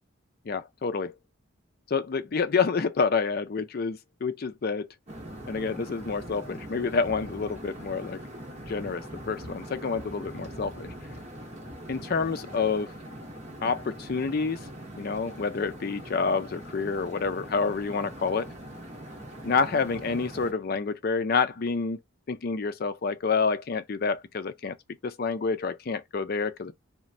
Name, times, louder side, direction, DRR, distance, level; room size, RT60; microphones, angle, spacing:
voice 1, 0.5-1.1 1.9-4.9 5.5-8.2 8.7-10.9 11.9-12.9 13.6-14.6 15.0-18.5 19.4-22.0 22.3-24.8 25.0-26.7, left 5 dB, 45° left, 0.4 m, -28 dB
sound 1, 5.1-20.5, right 1 dB, 30° right, 0.8 m, -42 dB
3.1 x 2.1 x 2.6 m
head